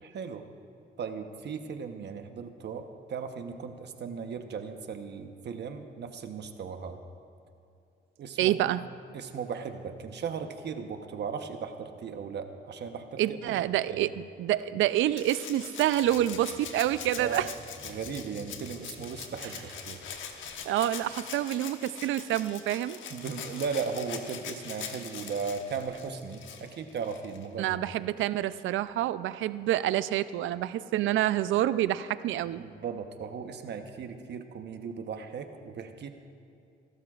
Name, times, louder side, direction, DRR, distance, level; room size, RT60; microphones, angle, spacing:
voice 1, 0.0-0.4 1.0-7.0 8.2-8.7 9.1-13.6 13.9-14.1 17.2-17.4 17.8-20.0 23.1-27.8 32.6-36.1, right 6 dB, 60° right, 7 dB, 1.0 m, -37 dB
voice 2, 8.4-8.8 13.2-17.5 20.6-23.0 27.6-32.6, right 13 dB, 80° right, 15 dB, 0.5 m, -27 dB
Rattle (instrument), 15.2-27.5 28.9-29.0, left 7 dB, 75° left, 1.2 m, -43 dB
sound 1, 16.0-21.6, left 2 dB, 40° left, 3.7 m, -53 dB
24.5 x 13.0 x 2.5 m, 2.5 s
cardioid pair, 90°, 20 cm